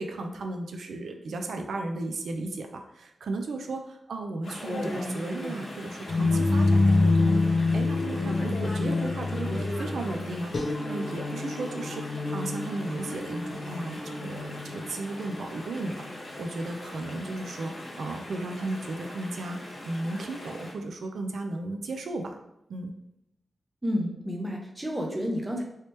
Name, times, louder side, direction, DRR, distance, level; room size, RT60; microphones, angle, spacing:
voice 1, 0.0-7.4 7.7-10.5 10.9-17.7 18.0-19.6 19.8-22.4 22.7-22.9, right 2 dB, 85° right, 4 dB, 0.3 m, -35 dB
Chatter / Stream, 4.4-20.7, left 1 dB, 60° left, 1.0 m, -39 dB
sound 1, 6.1-16.0, left 3 dB, 40° left, 0.5 m, -27 dB
voice 2, 23.8-25.6, equal, 15° right, 1 dB, 0.6 m, -30 dB
3.1 x 2.9 x 3.1 m, 0.83 s
wide cardioid pair, 120°, 0 cm